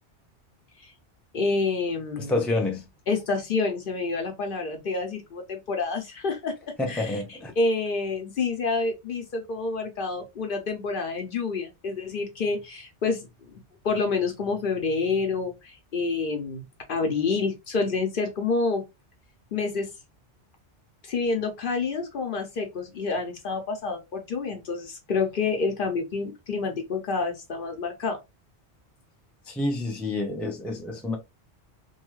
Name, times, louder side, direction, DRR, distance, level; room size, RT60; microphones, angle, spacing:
voice 1, 1.3-2.4 3.1-6.5 6.9-16.6 16.9-18.8 19.5-19.9 21.0-28.2, left 4 dB, 55° left, 0.8 m, -28 dB
voice 2, 2.3-2.9 6.8-7.5 29.5-31.2, left 2 dB, ahead, 0.3 m, -28 dB
2.6 x 2.3 x 3.0 m
omnidirectional pair, 1.2 m